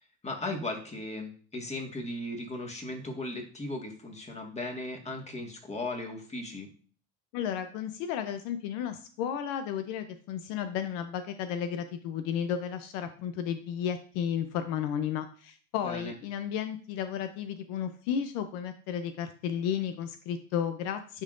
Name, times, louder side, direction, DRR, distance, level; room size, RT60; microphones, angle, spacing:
voice 1, 0.2-6.7 15.8-16.2, left 2 dB, 20° left, 2 dB, 1.7 m, -37 dB
voice 2, 7.3-21.2, left 8 dB, 80° left, 9 dB, 0.6 m, -33 dB
10.5 x 3.7 x 2.5 m, 0.43 s
supercardioid pair, 85°, 32 cm